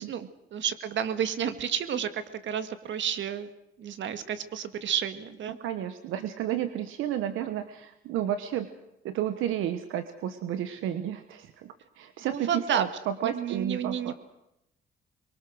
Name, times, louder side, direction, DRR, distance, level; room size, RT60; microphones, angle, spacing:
voice 1, 0.0-3.5 3.8-5.6 12.3-12.8 13.2-14.1, right 8 dB, 70° right, 10 dB, 1.9 m, -31 dB
voice 2, 5.6-8.7 9.0-14.1, right 11 dB, 90° right, 10 dB, 1.2 m, -32 dB
24.0 x 23.0 x 6.4 m, 0.85 s
cardioid pair, 90°, 20 cm